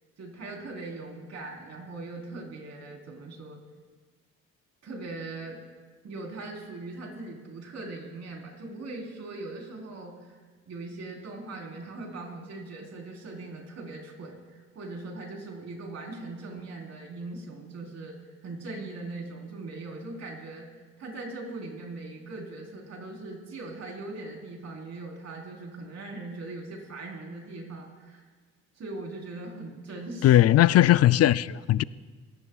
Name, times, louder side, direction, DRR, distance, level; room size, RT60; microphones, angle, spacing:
voice 1, 0.2-3.6 4.8-5.6 6.0-10.4 10.7-18.2 18.4-20.7 21.0-28.2 28.7-30.4, right 2 dB, 60° right, 4.2 m, -40 dB
voice 2, 30.2-31.8, left 13 dB, 55° left, 0.5 m, -19 dB
26.0 x 18.0 x 2.4 m
cardioid pair, 90°, 30 cm